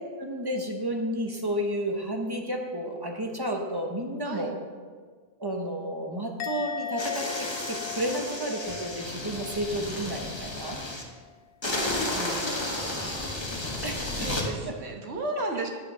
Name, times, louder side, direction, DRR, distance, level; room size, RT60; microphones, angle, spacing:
voice 1, 0.2-4.6 5.4-10.8 12.2-12.4 13.8-14.3 14.7-14.8, right 1 dB, 20° right, 1 dB, 1.1 m, -32 dB
Musical instrument, 6.4-9.8 10.1-10.5, left 9 dB, 90° left, 0.9 m, -38 dB
sound 1, 7.0-11.0 11.6-14.5, left 2 dB, 25° left, 1.3 m, -32 dB
voice 2, 12.0-13.3 14.0-15.7, right 2 dB, 90° right, 2 dB, 1.6 m, -35 dB
9.3 x 6.9 x 5.6 m, 1.5 s
omnidirectional pair, 1.1 m